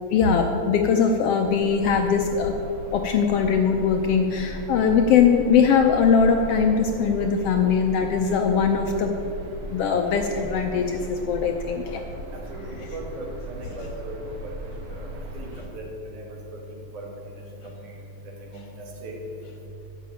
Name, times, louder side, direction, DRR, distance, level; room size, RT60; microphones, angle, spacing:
voice 1, 0.1-2.5 2.9-9.1 9.7-12.0, left 6 dB, 75° left, 4 dB, 1.4 m, -21 dB
sound 1, 1.5-15.6, right 1 dB, 55° right, 2.2 m, -38 dB
voice 2, 12.9-13.3 13.6-14.2 14.9-15.1 15.3-15.5 15.7-15.8 16.5-16.6 16.9-17.1 18.5-18.6 19.0-19.2, right 2 dB, 90° right, -1 dB, 3.4 m, -36 dB
11.5 x 6.2 x 8.7 m, 2.8 s
omnidirectional pair, 3.3 m